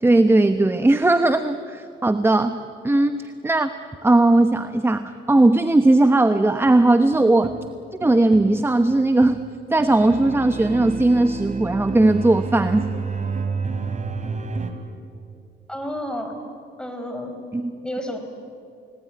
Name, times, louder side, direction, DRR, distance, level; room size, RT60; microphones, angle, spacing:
voice 1, 0.0-3.7 4.0-7.6 8.0-9.4 9.7-12.9 17.5-17.7, right 2 dB, 10° right, 9 dB, 1.0 m, -18 dB
sound 1, 6.6-14.7, right 4 dB, 40° right, 3.2 m, -30 dB
voice 2, 15.7-16.3 16.8-17.4 17.8-18.2, equal, 5° left, 5 dB, 5.0 m, -30 dB
29.5 x 19.0 x 9.5 m, 2.4 s
cardioid pair, 90°, 20 cm